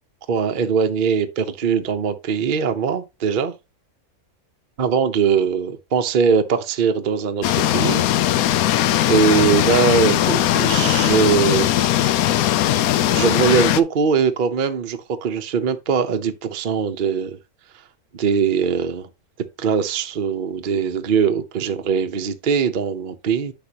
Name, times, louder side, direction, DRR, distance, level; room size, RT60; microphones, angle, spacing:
voice 1, 0.3-3.5 4.8-8.1 8.5-8.8 9.1-12.3 13.1-17.4 18.1-19.1 19.6-23.5, right 6 dB, 45° right, 0.7 m, -21 dB
sound 1, 7.4-13.8, left 13 dB, 75° left, 1.0 m, -19 dB
8.5 x 6.0 x 2.8 m
omnidirectional pair, 1.6 m